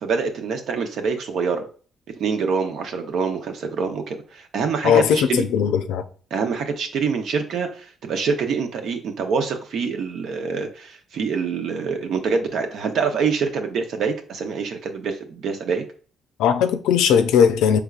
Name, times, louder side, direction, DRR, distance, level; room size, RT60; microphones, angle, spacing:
voice 1, 0.0-1.7 2.2-5.4 6.3-15.8, right 5 dB, 70° right, 0.7 m, -25 dB
voice 2, 4.8-6.0 16.4-17.8, left 8 dB, 85° left, 0.4 m, -18 dB
4.7 x 3.5 x 2.4 m
supercardioid pair, 65°, 0 cm